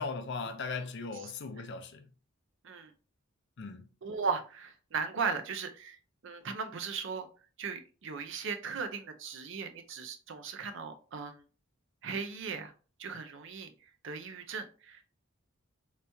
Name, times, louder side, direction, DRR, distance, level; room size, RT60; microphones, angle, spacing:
voice 1, 0.0-2.1 3.6-3.9, left 4 dB, 55° left, 0.5 m, -38 dB
voice 2, 4.0-6.0 6.2-7.3 7.6-11.4 12.0-12.7 13.0-13.7 14.0-15.0, right 5 dB, 65° right, 0.5 m, -37 dB
3.3 x 3.0 x 2.7 m
head